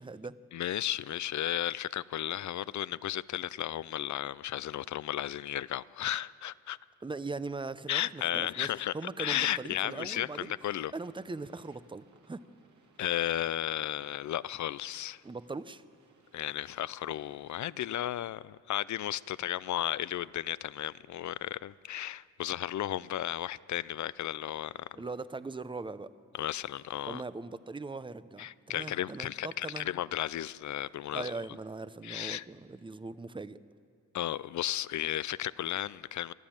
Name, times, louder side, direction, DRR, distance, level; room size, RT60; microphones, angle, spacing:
voice 1, 0.0-0.4 7.0-10.5 10.9-12.4 15.2-15.8 24.9-26.1 27.1-29.9 31.1-33.6, right 3 dB, 15° right, 0.6 m, -40 dB
voice 2, 0.5-6.8 7.9-8.9 9.2-10.9 13.0-15.2 16.3-24.9 26.3-27.2 28.4-31.3 32.0-32.4 34.1-36.3, left 12 dB, 70° left, 0.5 m, -34 dB
sound 1, 9.7-18.6, right 4 dB, 75° right, 2.2 m, -64 dB
23.0 x 13.0 x 8.8 m
wide cardioid pair, 105°, 30 cm